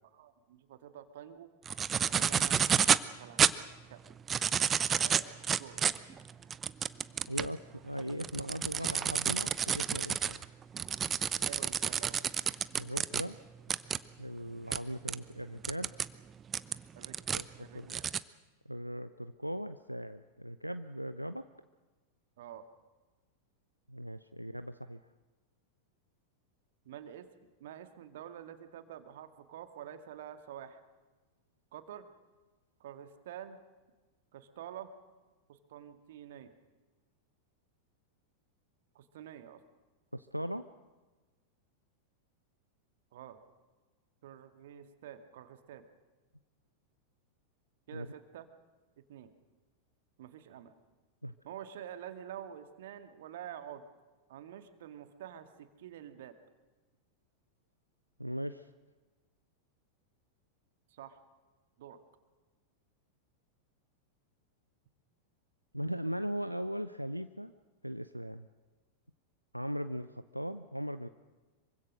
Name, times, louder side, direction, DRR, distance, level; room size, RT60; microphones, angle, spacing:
voice 1, 0.1-1.5 2.1-2.8 3.2-3.5 3.9-4.0 5.0-6.2 11.5-12.2 17.0-17.2 17.6-18.0 22.4-22.7 26.8-27.3 27.6-30.8 31.7-32.1 32.8-33.6 34.3-34.9 35.5-36.5 38.9-39.6 43.1-43.4 44.2-45.8 47.9-48.5 49.0-49.3 50.2-50.7 51.4-53.9 54.3-56.4 60.9-61.2 61.8-62.0, right 10 dB, 55° right, 9 dB, 2.2 m, -48 dB
sound 1, 1.7-3.1 3.4-3.5 4.1-7.5 8.0-13.2 13.7-14.0 14.7-14.8 15.1-15.2 15.6-16.1 16.5-17.4 17.9-18.2, right 7 dB, 20° right, 0.8 m, -29 dB
voice 2, 7.3-10.5 12.8-13.4 14.2-15.9 17.3-17.9 18.6-21.5 23.9-25.0 40.1-40.7 47.9-48.1 51.2-51.3 58.2-58.7 65.7-67.5 67.8-68.5 69.5-71.1, equal, 90° right, 11 dB, 0.7 m, -39 dB
26.0 x 24.0 x 6.4 m, 1.3 s
figure-of-eight pair, 90°, 0 cm